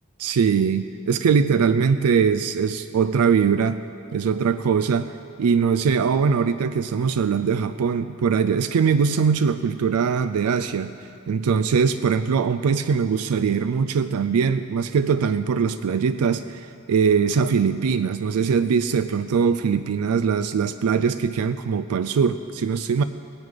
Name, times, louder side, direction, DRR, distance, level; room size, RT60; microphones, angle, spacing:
voice 1, 0.2-3.8 4.1-5.1 5.4-10.9 11.3-23.0, right 6 dB, 90° right, 11 dB, 0.4 m, -21 dB
17.5 x 9.8 x 5.2 m, 2.4 s
head